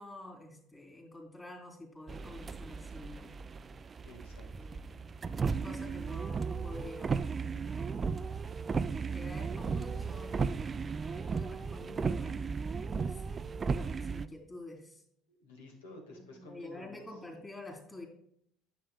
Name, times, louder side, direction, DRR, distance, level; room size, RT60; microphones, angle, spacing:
voice 1, 0.0-3.3 4.6-5.2 5.6-8.3 9.1-10.3 10.6-13.4 13.7-15.0 16.1-18.1, left 2 dB, 15° left, 1 dB, 3.2 m, -49 dB
sound 1, 2.1-14.3, right 5 dB, 30° right, 0.4 m, -35 dB
voice 2, 4.0-4.8 15.3-17.2, left 2 dB, 80° left, 2 dB, 1.8 m, -52 dB
10.0 x 7.0 x 2.3 m, 0.72 s
hypercardioid pair, 65°, 0 cm